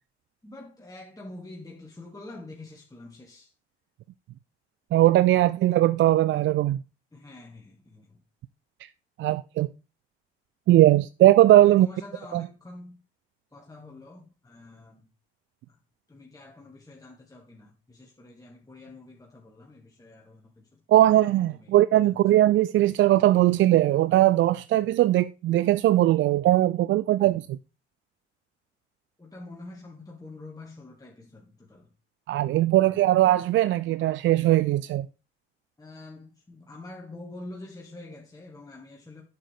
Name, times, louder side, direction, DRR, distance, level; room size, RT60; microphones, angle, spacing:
voice 1, 0.4-3.5 7.1-8.2 11.6-13.0 13.5-15.1 15.7-15.8 16.1-20.8 21.5-22.5 27.2-27.5 29.2-31.9 32.8-33.2 35.8-39.2, left 2 dB, 10° left, 1.9 m, -46 dB
voice 2, 4.9-6.8 8.8-8.9 9.2-9.7 10.7-11.9 12.3-12.4 20.9-27.4 32.3-35.1, right 14 dB, 40° right, 0.4 m, -20 dB
11.0 x 6.7 x 3.4 m
figure-of-eight pair, 45°, 32 cm